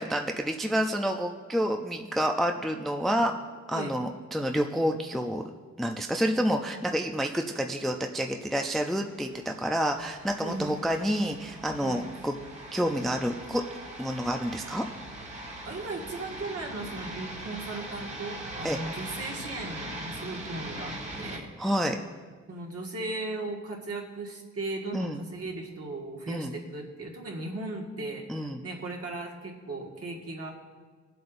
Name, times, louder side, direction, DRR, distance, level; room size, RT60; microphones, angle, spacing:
voice 1, 0.0-3.3 3.7-5.4 5.8-12.3 12.7-13.6 14.0-14.8 18.6-18.8 21.6-22.0 24.9-25.2 26.3-26.5 28.3-28.6, equal, ahead, 4 dB, 0.4 m, -28 dB
sound 1, 8.8-21.4, right 1 dB, 20° right, 1.4 m, -41 dB
voice 2, 10.4-10.8 11.8-12.0 15.6-21.7 22.5-30.5, right 2 dB, 55° right, -1 dB, 1.7 m, -37 dB
21.0 x 7.9 x 2.6 m, 1.5 s
wide cardioid pair, 165°, 30 cm